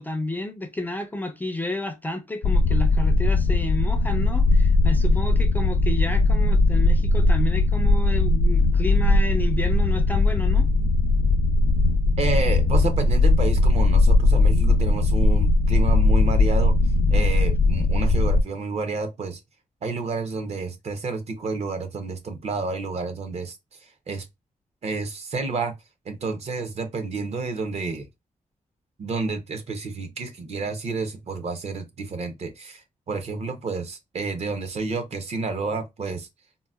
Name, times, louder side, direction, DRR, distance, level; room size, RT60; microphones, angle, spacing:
voice 1, 0.0-10.7, left 1 dB, 15° left, 0.4 m, -31 dB
sound 1, 2.4-18.4, left 2 dB, 80° left, 0.4 m, -19 dB
voice 2, 12.2-16.8 17.1-19.4 19.8-23.6 24.1-24.2 24.8-25.7 26.1-28.1 29.0-32.8 33.1-36.3, right 3 dB, 50° right, 0.6 m, -30 dB
3.8 x 2.1 x 2.3 m
wide cardioid pair, 175°, 14 cm